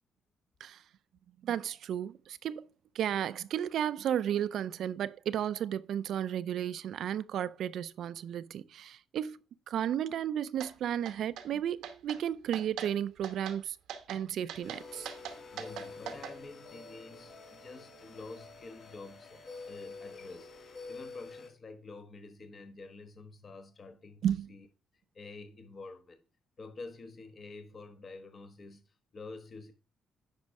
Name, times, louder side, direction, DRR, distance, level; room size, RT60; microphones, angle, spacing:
voice 1, 1.4-2.7 2.9-9.4 9.7-13.8 14.1-15.1 24.2-24.5, right 10 dB, 70° right, 0.4 m, -33 dB
sound 1, 10.6-10.7 11.1-11.5 11.8-12.2 12.5-12.9 13.2-13.6 13.9-14.2 14.5-16.3, right 8 dB, 90° right, 1.0 m, -42 dB
sound 2, 14.6-21.5, left 3 dB, 60° left, 2.5 m, -48 dB
voice 2, 15.5-24.7 25.1-26.2 26.6-29.7, left 3 dB, 40° left, 1.2 m, -48 dB
9.7 x 5.3 x 3.5 m
cardioid pair, 90°, 0 cm